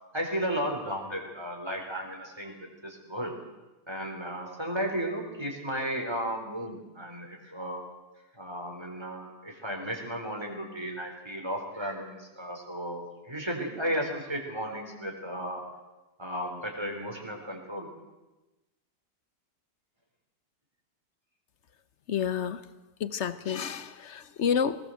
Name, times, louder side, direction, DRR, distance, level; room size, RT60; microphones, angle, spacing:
voice 1, 0.1-3.3 3.9-7.8 8.4-15.6 16.2-17.9, equal, 15° right, 2 dB, 3.9 m, -34 dB
voice 2, 22.1-22.6 23.0-24.8, left 7 dB, 50° left, 14 dB, 0.9 m, -29 dB
20.0 x 19.0 x 7.8 m, 1.1 s
omnidirectional pair, 1.9 m